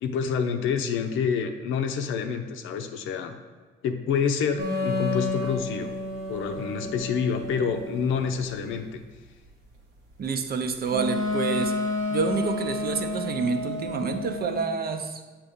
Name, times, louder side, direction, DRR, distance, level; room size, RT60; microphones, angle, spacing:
voice 1, 0.0-3.3 3.8-5.9 6.3-9.0, left 6 dB, 85° left, 6 dB, 0.6 m, -27 dB
sound 1, 4.6-8.6 10.9-14.6, left 2 dB, 90° right, 1.2 m, -30 dB
voice 2, 10.2-11.7 12.1-15.2, right 4 dB, 50° right, 7 dB, 0.6 m, -28 dB
6.9 x 2.9 x 5.1 m, 1.4 s
cardioid pair, 90°, 20 cm